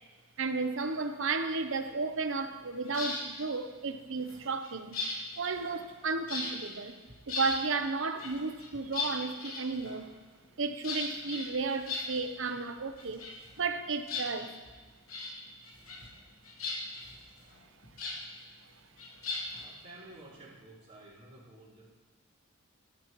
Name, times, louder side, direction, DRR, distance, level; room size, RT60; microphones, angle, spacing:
voice 1, 0.4-5.0 5.4-7.0 7.3-10.1 10.6-13.3 13.6-14.5, right 4 dB, 60° right, 0.9 m, -33 dB
sound 1, 2.8-3.3 4.2-6.0 6.3-6.7 7.1-7.6 8.2-10.1 10.8-12.5 12.8-13.8 14.0-14.7 15.1-15.3 15.6-16.2 16.4-18.2 19.0-19.6, left 3 dB, 75° left, 3.2 m, -38 dB
voice 2, 19.6-21.8, right 2 dB, 30° right, 4.7 m, -52 dB
19.0 x 12.0 x 3.1 m
head